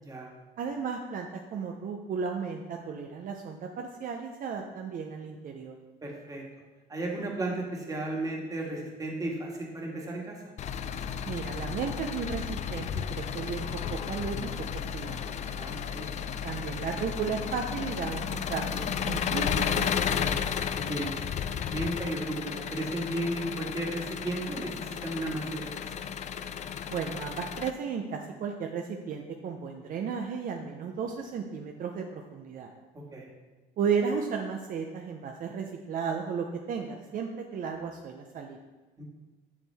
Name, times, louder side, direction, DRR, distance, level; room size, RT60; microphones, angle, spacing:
voice 1, 0.6-5.8 11.3-14.5 14.9-15.3 16.4-20.4 26.9-32.7 33.8-38.6, right 6 dB, 55° right, 3 dB, 0.6 m, -34 dB
voice 2, 6.0-6.4 6.9-10.4 15.4-16.1 20.9-21.2 21.6-25.6 26.0-26.1 32.9-33.3 39.0-39.1, right 1 dB, 20° right, -1 dB, 1.7 m, -34 dB
Engine, 10.6-27.7, left 7 dB, 45° left, 0.4 m, -33 dB
7.1 x 6.3 x 3.4 m, 1.2 s
cardioid pair, 110°, 17 cm